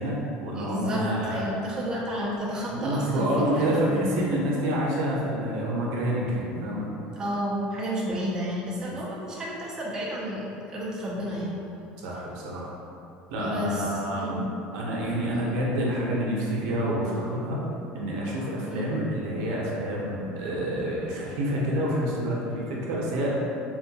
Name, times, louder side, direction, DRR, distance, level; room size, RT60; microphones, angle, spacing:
voice 1, 0.0-1.4 2.7-6.9 8.9-9.0 12.0-12.7 13.3-14.4 14.7-17.6 17.9-23.3, right 1 dB, 80° right, -4 dB, 0.7 m, -28 dB
voice 2, 0.6-1.0 1.3-4.4 7.2-11.5 13.4-14.5 15.3-15.5 18.7-18.9, equal, 20° right, -6 dB, 0.5 m, -31 dB
3.7 x 2.2 x 2.8 m, 2.8 s
cardioid pair, 135°, 4 cm